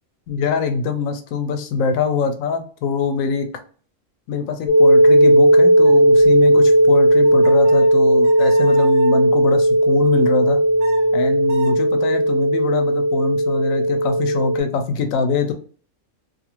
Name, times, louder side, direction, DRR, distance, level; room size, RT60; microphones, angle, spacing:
voice 1, 0.3-3.5 4.3-10.6 11.1-15.5, left 5 dB, 85° left, 6 dB, 1.0 m, -23 dB
sound 1, 4.7-14.6, right 1 dB, 60° left, 0.4 m, -15 dB
sound 2, 5.8-9.3 10.5-11.8, right 3 dB, 40° right, 0.7 m, -36 dB
2.5 x 2.4 x 2.9 m, 0.43 s
omnidirectional pair, 1.4 m